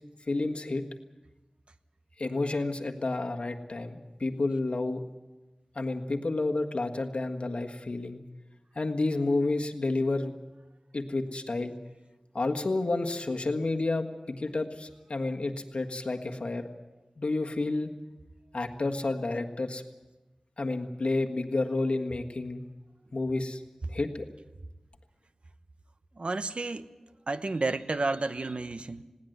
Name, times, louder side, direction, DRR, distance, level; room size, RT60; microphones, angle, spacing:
voice 1, 0.3-0.8 2.2-5.0 5.7-8.2 8.7-10.3 10.9-11.7 12.3-16.6 17.2-17.9 18.5-19.8 20.6-22.6 23.1-23.6 23.9-24.2, left 2 dB, 65° left, 4 dB, 1.6 m, -30 dB
voice 2, 26.2-26.9 27.3-29.0, right 3 dB, 65° right, 11 dB, 1.0 m, -31 dB
20.5 x 17.5 x 8.0 m, 1.1 s
wide cardioid pair, 65°, 2 cm